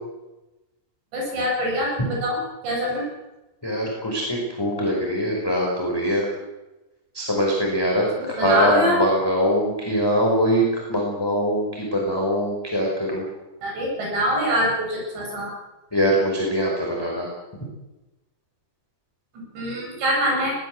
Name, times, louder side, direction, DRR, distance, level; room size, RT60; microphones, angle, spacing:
voice 1, 1.1-2.4 2.6-3.1 8.4-9.0 13.6-15.5 19.5-20.5, equal, 60° right, -2 dB, 10.0 m, -24 dB
voice 2, 3.6-6.3 7.1-13.2 15.9-17.3, equal, 5° left, -2 dB, 4.3 m, -23 dB
22.5 x 18.5 x 7.7 m, 1.0 s
omnidirectional pair, 5.7 m